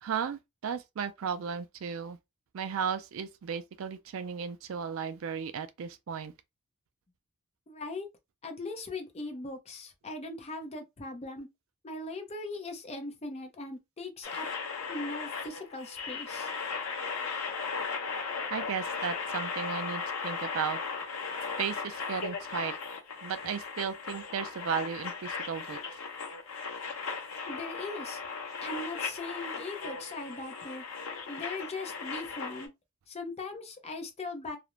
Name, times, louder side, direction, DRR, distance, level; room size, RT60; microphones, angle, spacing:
voice 1, 0.0-2.2 2.5-6.3 18.5-20.8 21.6-22.7 23.2-25.8, right 7 dB, 65° right, 0.4 m, -35 dB
voice 2, 7.7-8.1 8.4-11.5 11.8-14.5 14.9-16.5 27.5-28.2 28.6-30.8 31.3-32.7 33.1-34.6, left 2 dB, 30° left, 0.5 m, -39 dB
sound 1, 14.2-32.7, left 5 dB, 65° left, 0.8 m, -37 dB
2.4 x 2.0 x 3.0 m
head